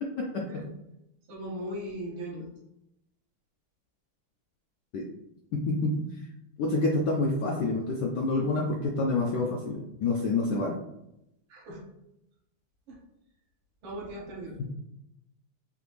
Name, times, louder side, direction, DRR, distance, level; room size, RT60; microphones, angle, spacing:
voice 1, 0.0-0.6 4.9-5.1 5.5-6.1 6.6-10.8, left 2 dB, 75° left, 0 dB, 0.9 m, -28 dB
voice 2, 1.3-2.5 11.5-11.9 12.9-13.0 13.8-14.7, equal, 70° right, -2 dB, 1.7 m, -38 dB
5.0 x 2.6 x 3.2 m, 0.84 s
omnidirectional pair, 2.3 m